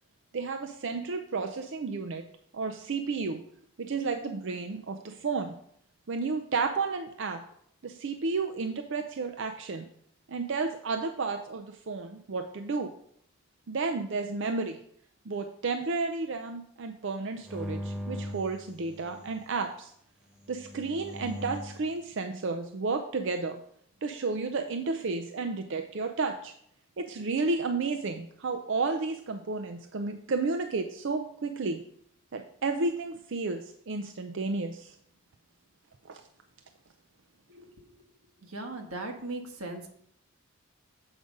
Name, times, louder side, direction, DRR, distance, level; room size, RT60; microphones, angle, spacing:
voice 1, 0.3-2.2 2.5-3.4 3.8-5.6 6.1-7.4 7.8-9.9 10.3-12.9 13.7-14.8 15.3-19.9 20.5-23.6 24.0-26.5 27.0-31.8 32.3-35.0 36.0-36.2, right 4 dB, 60° right, 6 dB, 0.5 m, -32 dB
sound 1, 17.4-19.4 20.4-21.9, equal, 5° right, 0.7 m, -39 dB
voice 2, 37.5-37.8 38.4-39.9, right 2 dB, 90° right, 4 dB, 1.4 m, -38 dB
7.9 x 5.0 x 5.2 m, 0.67 s
head